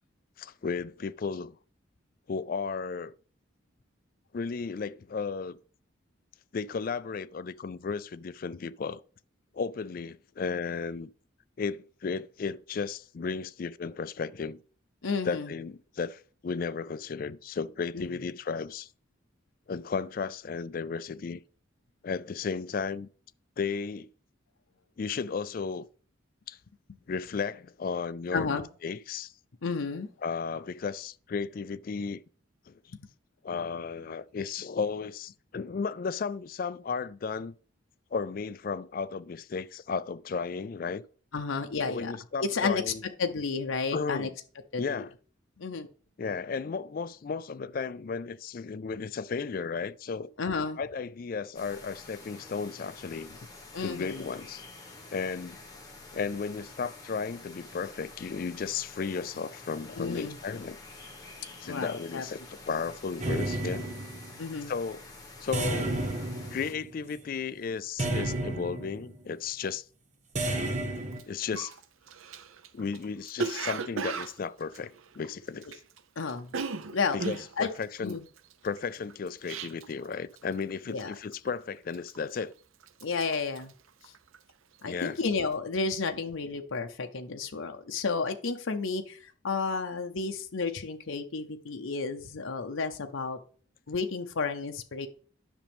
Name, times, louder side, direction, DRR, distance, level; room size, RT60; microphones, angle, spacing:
voice 1, 0.4-1.6 2.3-3.1 4.3-5.6 6.5-9.0 9.5-11.1 11.6-14.6 15.2-18.9 19.7-21.4 22.0-23.1 23.6-24.1 25.0-25.9 26.5-26.6 27.1-29.3 30.2-32.2 32.7-32.8 33.4-37.5 38.1-41.0 41.8-43.0 43.9-44.3 44.8-45.1 46.2-50.3 50.8-53.4 53.8-54.6 55.1-55.6 56.1-60.8 61.6-64.0 64.7-65.0 65.4-65.9 66.5-69.8 71.3-71.7 72.7-75.7 77.1-78.2 78.6-82.5 84.8-85.2, left 5 dB, 45° left, 0.3 m, -34 dB
voice 2, 15.0-15.5 17.9-18.2 28.3-28.6 29.6-30.1 32.9-33.0 41.3-42.1 42.4-42.9 43.2-44.3 44.7-45.0 45.6-45.9 50.4-50.8 53.7-54.2 60.0-60.4 61.6-62.2 64.4-64.7 76.2-76.5 76.9-77.2 77.6-77.7 78.0-78.2 80.9-81.1 83.0-83.7 84.0-84.1 84.8-93.4 93.9-95.1, left 4 dB, 80° left, 0.7 m, -32 dB
sound 1, 51.5-66.7, left 3 dB, 20° left, 1.4 m, -48 dB
sound 2, 63.2-64.5 65.5-67.2 68.0-69.1 70.4-71.2, right 1 dB, 35° right, 1.2 m, -32 dB
Cough, 71.1-71.2 71.5-76.0 76.2-80.1 80.4-80.7 81.0-81.5 81.9-82.5 82.8-84.5 84.8-85.1, right 4 dB, 90° right, 0.6 m, -37 dB
10.0 x 6.1 x 3.5 m
head